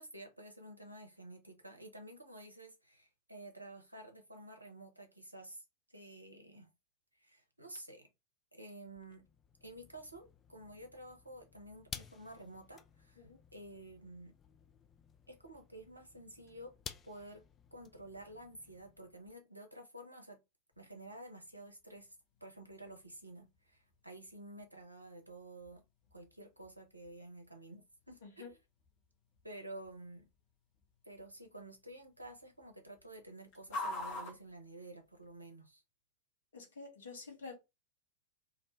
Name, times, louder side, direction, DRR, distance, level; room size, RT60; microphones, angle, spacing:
voice 1, 0.0-6.7 7.2-8.1 8.5-9.3 9.6-14.3 15.3-16.7 17.0-17.4 17.7-20.4 20.8-22.2 22.4-25.8 26.1-28.6 29.4-30.3 31.0-35.8, right 1 dB, 85° right, 0.7 m, -51 dB
sound 1, 8.9-19.4, left 7 dB, 25° left, 0.3 m, -54 dB
sound 2, 20.7-35.5, left 2 dB, 40° left, 0.8 m, -51 dB
voice 2, 28.2-28.5 36.5-37.5, left 4 dB, 65° left, 1.0 m, -49 dB
2.5 x 2.2 x 3.0 m
figure-of-eight pair, 90°, 0 cm